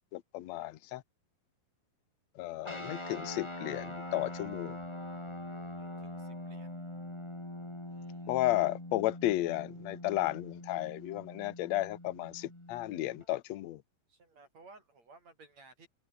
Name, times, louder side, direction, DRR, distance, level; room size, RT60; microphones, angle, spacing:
voice 1, 0.1-1.0 2.4-4.8 8.3-13.8, left 16 dB, 65° left, 2.0 m, -33 dB
sound 1, 2.6-13.3, left 1 dB, 10° left, 3.3 m, -43 dB
voice 2, 5.8-6.7 7.9-8.4 14.1-15.9, right 3 dB, 50° right, 8.6 m, -58 dB
omnidirectional pair, 3.9 m